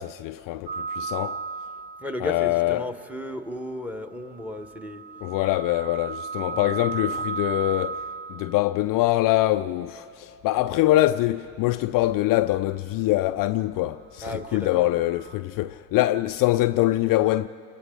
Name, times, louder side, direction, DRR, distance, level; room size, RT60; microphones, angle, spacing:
voice 1, 0.0-1.4 2.2-2.9 5.2-8.0 8.3-17.5, left 16 dB, 45° left, 0.5 m, -24 dB
sound 1, 0.7-2.3 4.3-8.6 14.6-15.4, right 5 dB, 80° right, 2.3 m, -34 dB
voice 2, 2.0-5.1 6.5-6.8 14.2-14.9, left 1 dB, 5° right, 1.3 m, -34 dB
29.0 x 28.0 x 3.9 m
hypercardioid pair, 65°, 47 cm